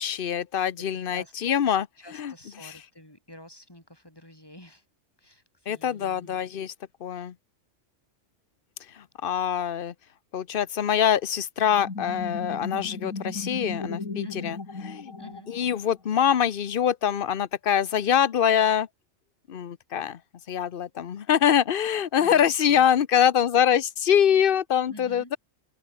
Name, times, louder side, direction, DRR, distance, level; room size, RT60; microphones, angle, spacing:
voice 1, 0.0-1.9 2.1-2.3 2.6-2.7 5.7-6.7 7.0-7.3 9.0-9.9 10.3-14.6 14.8-15.1 15.5-18.9 19.5-20.2 20.5-25.4, left 9 dB, 50° left, 0.9 m, -24 dB
voice 2, 2.0-4.8 5.2-6.4 14.2-14.6 15.2-15.5 22.2-22.8 24.9-25.3, left 1 dB, 15° left, 5.9 m, -48 dB
sound 1, 11.7-16.1, left 3 dB, 85° left, 3.5 m, -36 dB
open air
omnidirectional pair, 1.4 m